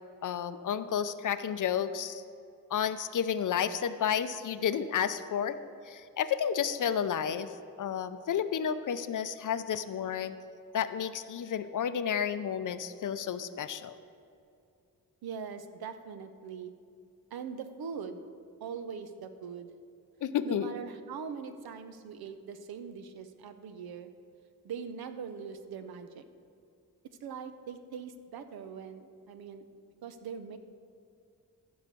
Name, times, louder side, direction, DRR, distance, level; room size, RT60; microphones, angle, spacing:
voice 1, 0.2-2.2 2.7-5.6 5.9-10.4 10.7-14.0 20.2-20.7, left 8 dB, 60° left, 12 dB, 0.6 m, -31 dB
voice 2, 15.2-16.7 17.3-18.3 18.6-19.7 20.4-24.1 24.6-26.2 27.0-29.6 30.0-30.6, right 6 dB, 85° right, 9 dB, 0.8 m, -42 dB
14.5 x 4.9 x 6.8 m, 2.5 s
cardioid pair, 85°, 36 cm